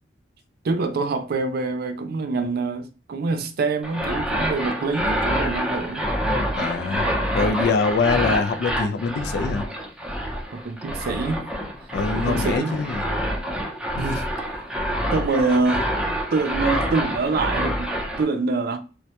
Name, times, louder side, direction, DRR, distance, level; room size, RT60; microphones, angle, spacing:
voice 1, 0.6-6.1 10.5-11.4 12.1-12.8 14.0-14.6 15.1-15.9 16.3-18.8, right 3 dB, 55° right, 0.4 m, -25 dB
sound 1, 3.8-18.2, equal, 5° right, 0.5 m, -27 dB
voice 2, 6.5-7.1 7.3-9.7 11.9-13.0 14.0-14.2, left 4 dB, 60° left, 0.3 m, -24 dB
2.1 x 2.1 x 2.7 m
head